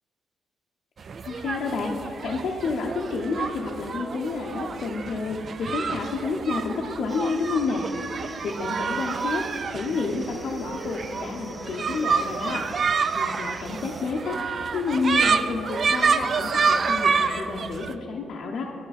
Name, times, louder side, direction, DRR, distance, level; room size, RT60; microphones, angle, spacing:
sound 1, 1.0-17.9, right 5 dB, 45° right, 0.3 m, -28 dB
voice 1, 1.2-7.8 8.2-18.6, left 4 dB, 65° left, -2 dB, 0.6 m, -30 dB
sound 2, 7.1-14.0, right 1 dB, 25° right, 1.4 m, -48 dB
10.0 x 5.6 x 4.1 m, 2.9 s
cardioid pair, 90°, 0 cm